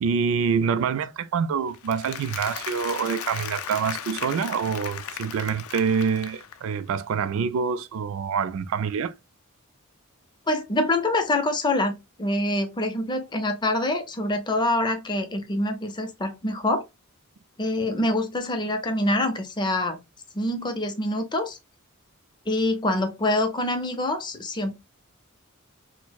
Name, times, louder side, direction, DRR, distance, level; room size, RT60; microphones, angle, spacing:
voice 1, 0.0-9.1, right 6 dB, 65° right, 0.3 m, -26 dB
Applause, 1.7-6.8, left 9 dB, 80° left, 0.4 m, -36 dB
voice 2, 10.5-16.8 17.6-20.0 20.3-21.6 22.5-24.7, left 1 dB, 20° left, 0.5 m, -25 dB
4.3 x 2.0 x 2.2 m
head